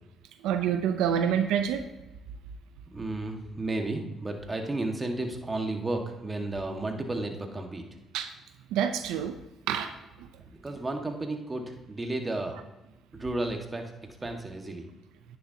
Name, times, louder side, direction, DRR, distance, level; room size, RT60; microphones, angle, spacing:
voice 1, 0.4-1.8 8.1-8.3 8.7-9.3 9.7-9.9, right 8 dB, 85° right, 8 dB, 0.6 m, -27 dB
voice 2, 2.9-7.8 10.5-12.5 13.1-13.8 14.2-14.9, right 2 dB, 25° right, 3 dB, 1.7 m, -33 dB
10.5 x 10.0 x 2.8 m, 1.0 s
supercardioid pair, 70°, 0 cm